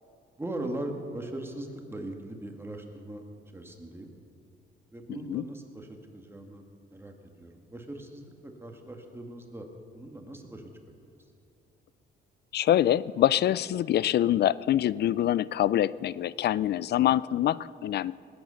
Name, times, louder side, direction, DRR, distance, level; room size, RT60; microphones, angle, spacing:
voice 1, 0.4-3.2 3.5-4.1 4.9-6.6 6.9-9.7 9.9-10.7 11.0-11.1, right 1 dB, 10° right, 3 dB, 1.9 m, -40 dB
voice 2, 5.1-5.4 12.5-18.1, left 12 dB, 55° left, 20 dB, 0.4 m, -25 dB
19.5 x 9.4 x 6.4 m, 2.5 s
cardioid pair, 90°, 20 cm